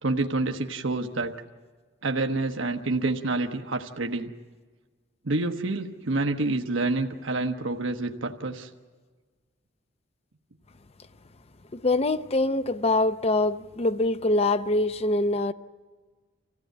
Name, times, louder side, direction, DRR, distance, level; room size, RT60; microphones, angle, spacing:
voice 1, 0.0-1.3 2.0-4.3 5.2-8.7, right 2 dB, 90° right, 1.2 m, -28 dB
voice 2, 11.7-15.5, left 2 dB, 30° left, 0.6 m, -24 dB
27.0 x 16.0 x 9.2 m
head